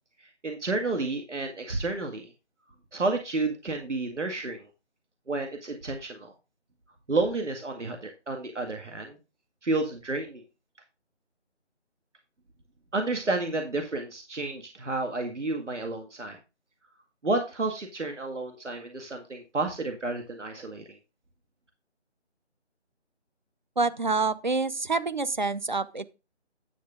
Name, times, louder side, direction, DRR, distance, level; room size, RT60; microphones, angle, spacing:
voice 1, 0.2-2.3 2.9-4.7 5.3-6.3 7.1-9.2 9.6-10.4 12.9-16.4 17.2-20.8, right 2 dB, 80° right, 2.1 m, -31 dB
voice 2, 23.8-26.0, right 3 dB, 40° right, 0.6 m, -27 dB
10.0 x 7.1 x 3.6 m
figure-of-eight pair, 160°, 35 cm